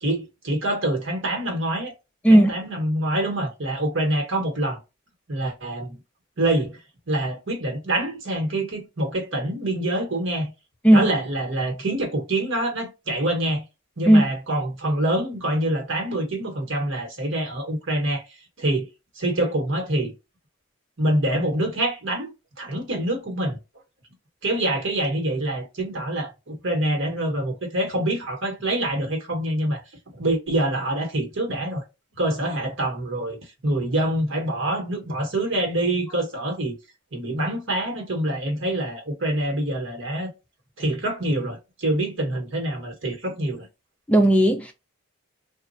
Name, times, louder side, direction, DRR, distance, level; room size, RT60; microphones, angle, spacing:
voice 1, 0.0-1.9 2.3-4.8 5.3-6.0 6.4-6.8 7.1-10.5 10.9-13.6 14.0-18.2 18.6-18.9 19.2-20.1 21.0-22.3 22.6-23.6 24.4-29.8 30.2-31.8 32.2-33.4 33.6-36.7 37.1-40.3 40.8-43.7, right 1 dB, 65° right, 1.2 m, -25 dB
voice 2, 44.1-44.7, right 1 dB, 5° left, 0.3 m, -15 dB
3.1 x 2.4 x 2.6 m
head